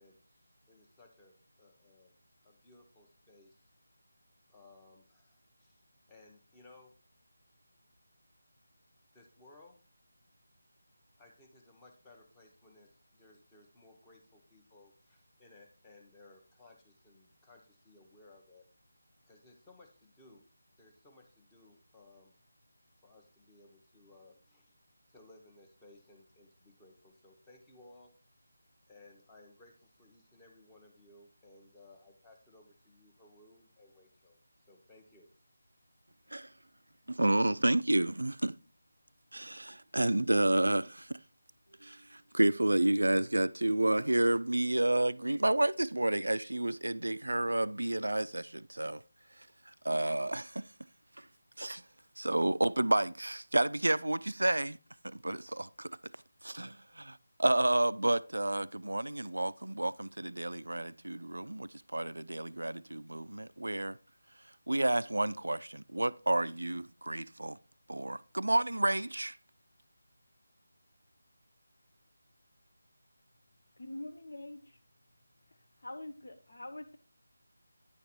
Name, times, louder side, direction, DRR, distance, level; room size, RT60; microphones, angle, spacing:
voice 1, 0.0-2.1 2.4-3.7 4.5-6.9 9.1-9.8 11.2-18.6 19.3-20.4 20.8-22.3 23.0-24.7 25.1-28.1 28.9-34.4 34.7-35.3, left 2 dB, 10° left, 1.2 m, -60 dB
voice 2, 37.1-38.5 39.3-41.2 41.8-49.0 49.8-50.7 51.2-51.3 51.6-51.8 52.2-54.8 55.0-56.0 56.4-64.0 64.7-67.6 67.9-69.4, right 1 dB, 80° right, 0.3 m, -30 dB
voice 3, 73.8-74.8 75.8-77.0, left 1 dB, 60° left, 1.1 m, -44 dB
9.7 x 4.0 x 4.2 m
figure-of-eight pair, 160°, 0 cm